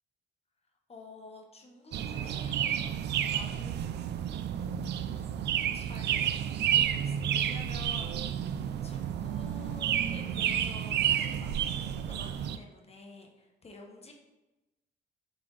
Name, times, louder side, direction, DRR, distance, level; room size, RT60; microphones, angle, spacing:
voice 1, 0.9-2.9 3.3-4.0 4.3-4.4 5.1-5.3 5.7-6.3 6.7-8.2 8.5-14.1, left 2 dB, 35° left, 1 dB, 1.1 m, -50 dB
sound 1, 1.9-12.6, right 9 dB, 65° right, 0.4 m, -31 dB
7.3 x 3.4 x 3.8 m, 1.0 s
cardioid pair, 95°, 19 cm